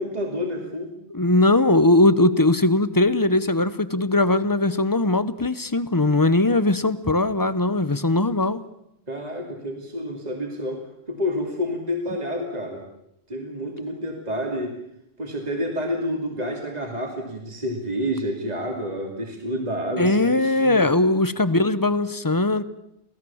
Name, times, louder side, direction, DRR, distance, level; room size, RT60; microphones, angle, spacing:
voice 1, 0.0-1.0 9.1-12.8 13.3-14.8 15.2-20.9, equal, 35° right, 1 dB, 2.9 m, -29 dB
voice 2, 1.1-8.6 20.0-22.6, left 2 dB, 20° left, 14 dB, 0.8 m, -20 dB
28.0 x 17.5 x 7.2 m, 0.81 s
omnidirectional pair, 1.2 m